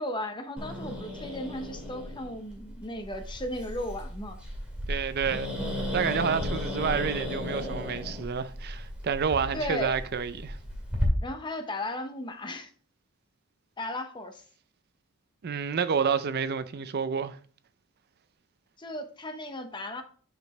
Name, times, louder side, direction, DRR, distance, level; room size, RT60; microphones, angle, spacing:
voice 1, 0.0-4.4 9.5-10.0 11.2-12.7 13.8-14.4 18.8-20.0, left 1 dB, 20° left, 0.7 m, -35 dB
Growling, 0.6-11.1, left 1 dB, 5° right, 2.1 m, -35 dB
voice 2, 4.9-5.5 5.9-10.6 15.4-17.4, right 6 dB, 45° right, 0.4 m, -29 dB
9.2 x 5.1 x 3.1 m
head